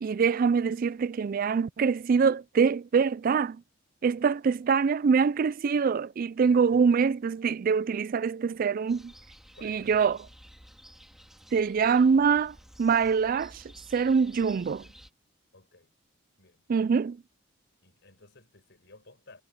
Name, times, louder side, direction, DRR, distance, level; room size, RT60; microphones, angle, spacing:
voice 1, 0.0-3.6 4.0-9.1 9.6-10.2 11.5-13.6 13.9-14.8 16.7-17.2, right 5 dB, 45° right, 0.3 m, -24 dB
voice 2, 4.0-4.3 6.5-6.8 9.1-9.3 9.5-10.3 15.5-15.9 16.4-16.7 17.8-19.4, left 2 dB, 60° left, 6.2 m, -56 dB
sound 1, 8.9-15.1, equal, ahead, 1.9 m, -53 dB
head